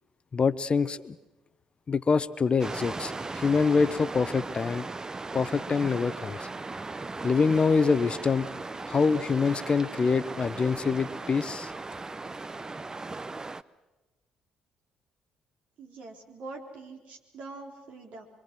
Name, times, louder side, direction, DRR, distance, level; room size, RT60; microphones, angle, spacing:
voice 1, 0.3-1.2 1.9-4.9 5.3-6.5 7.2-8.5 8.9-11.7, left 5 dB, 40° left, 15 dB, 0.9 m, -25 dB
sound 1, 2.6-13.6, right 3 dB, 25° right, 0.7 m, -37 dB
voice 2, 15.8-18.3, right 3 dB, 60° right, 1 dB, 3.9 m, -44 dB
25.0 x 24.5 x 6.2 m, 1.1 s
hypercardioid pair, 50°, 3 cm